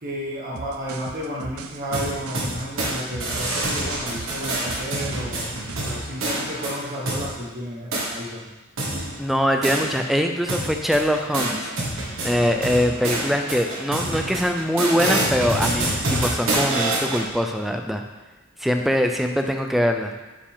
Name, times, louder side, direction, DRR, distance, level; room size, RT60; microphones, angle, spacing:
voice 1, 0.0-5.5 5.8-8.5 14.1-14.4, equal, 40° right, -5 dB, 1.2 m, -32 dB
sound 1, 0.5-6.0, right 4 dB, 90° right, 0.6 m, -38 dB
sound 2, 1.9-2.9 3.2-7.3 7.9-8.1 8.8-10.2 10.5-17.2, right 1 dB, 65° right, 1.7 m, -27 dB
voice 2, 9.2-11.7 12.2-18.0 18.6-20.1, equal, ahead, 4 dB, 0.5 m, -22 dB
8.7 x 5.0 x 3.7 m, 1.1 s
head